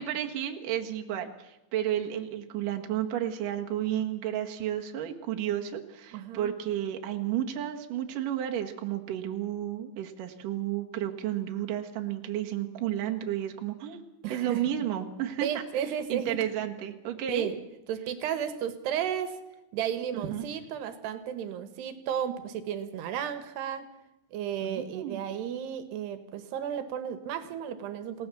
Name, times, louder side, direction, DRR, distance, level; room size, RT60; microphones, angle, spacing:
voice 1, 0.0-14.0 14.3-17.5 20.1-20.4 24.6-25.2, right 11 dB, 60° right, 3 dB, 3.0 m, -32 dB
voice 2, 6.1-6.5 14.2-14.6 15.4-16.4 17.3-17.6 17.9-19.4 19.7-23.9 24.3-28.3, right 9 dB, 80° right, 10 dB, 3.4 m, -33 dB
28.5 x 17.5 x 7.0 m, 0.93 s
omnidirectional pair, 4.7 m